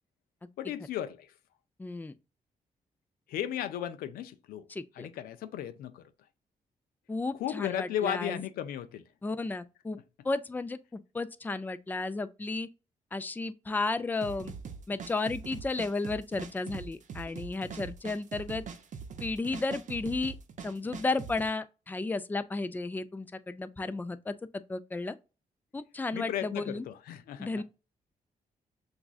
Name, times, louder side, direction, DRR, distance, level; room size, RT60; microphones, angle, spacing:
voice 1, 0.6-1.3 3.3-4.7 5.0-6.1 7.4-9.0 26.1-27.5, left 11 dB, 85° left, 0.4 m, -35 dB
voice 2, 1.8-2.1 4.7-5.1 7.1-8.4 9.2-10.0 10.2-12.7 13.1-14.5 14.9-18.6 19.2-20.4 20.6-24.3 24.7-25.2 25.7-26.9 27.4-27.6, left 3 dB, 10° left, 0.4 m, -33 dB
sound 1, 14.2-21.5, right 6 dB, 55° right, 0.6 m, -42 dB
5.9 x 2.4 x 2.3 m
supercardioid pair, 60°, 15 cm